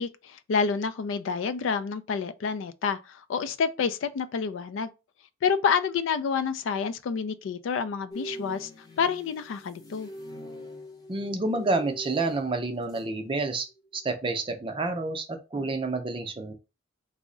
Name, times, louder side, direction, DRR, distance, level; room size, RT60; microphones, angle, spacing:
voice 1, 0.0-4.9 5.4-8.7 9.0-10.1, left 6 dB, 70° left, 0.3 m, -28 dB
sound 1, 8.1-13.2 13.5-13.8, equal, 20° left, 0.6 m, -43 dB
voice 2, 11.1-13.7 13.9-16.5, right 3 dB, 25° right, 0.5 m, -29 dB
3.5 x 2.1 x 3.7 m
head